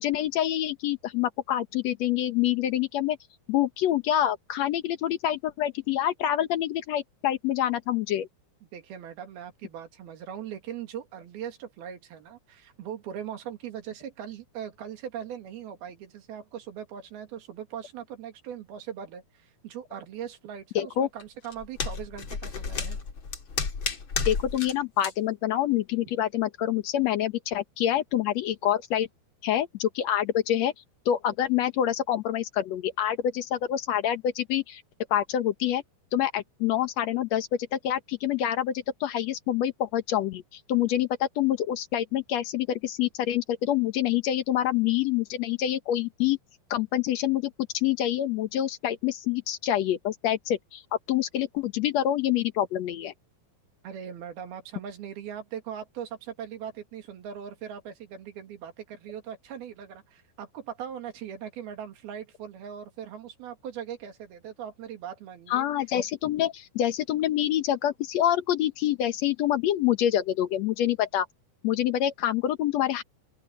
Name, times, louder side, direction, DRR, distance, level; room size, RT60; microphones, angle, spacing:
voice 1, 0.0-3.2 3.5-8.3 20.7-21.1 24.3-29.1 29.4-30.7 31.0-34.8 35.1-35.8 36.1-46.4 46.7-50.8 51.1-53.1 65.5-71.3 71.6-73.0, left 11 dB, 80° left, 1.5 m, -26 dB
voice 2, 8.7-23.0 53.8-65.6, right 9 dB, 70° right, 4.0 m, -40 dB
sound 1, 21.2-24.7 25.0-25.1, left 5 dB, 35° left, 2.6 m, -32 dB
open air
omnidirectional pair, 4.6 m